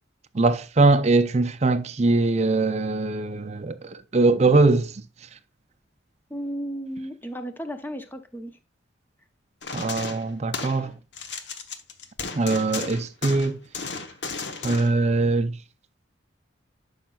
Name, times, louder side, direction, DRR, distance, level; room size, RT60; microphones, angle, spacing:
voice 1, 0.3-5.0 9.7-10.9 12.3-13.6 14.6-15.6, right 3 dB, 35° right, 0.5 m, -22 dB
voice 2, 6.3-8.5, equal, 10° left, 0.7 m, -34 dB
sound 1, 9.6-10.8 11.1-14.9, left 5 dB, 60° left, 1.0 m, -34 dB
11.5 x 5.6 x 2.3 m
head